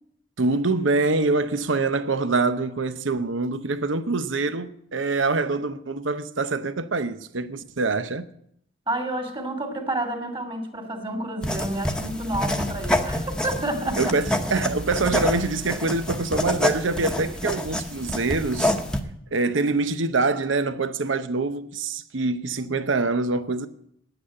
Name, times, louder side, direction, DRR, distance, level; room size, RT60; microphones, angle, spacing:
voice 1, 0.4-8.3 14.0-18.7 19.3-23.7, right 3 dB, 70° right, 0.8 m, -25 dB
voice 2, 8.9-14.1 19.0-19.1, right 1 dB, 30° right, 2.5 m, -29 dB
sound 1, 11.4-19.0, left 1 dB, 5° left, 1.0 m, -27 dB
9.7 x 9.1 x 8.7 m
head